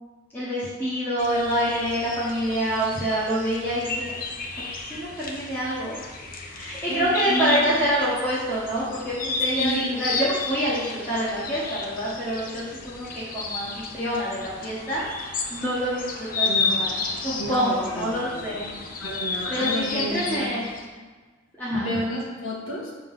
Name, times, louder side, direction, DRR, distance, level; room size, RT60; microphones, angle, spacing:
voice 1, 0.3-4.1 4.6-6.0 6.5-13.7 13.9-18.7 19.5-20.6 21.6-21.9, equal, 10° left, -10 dB, 1.5 m, -27 dB
sound 1, 1.2-20.8, left 3 dB, 45° left, 0.7 m, -32 dB
voice 2, 6.9-7.7 9.6-9.8 16.4-16.8 17.4-18.6 19.0-20.5 21.7-22.9, equal, 80° left, -2 dB, 1.6 m, -31 dB
6.4 x 3.8 x 5.6 m, 1.4 s
head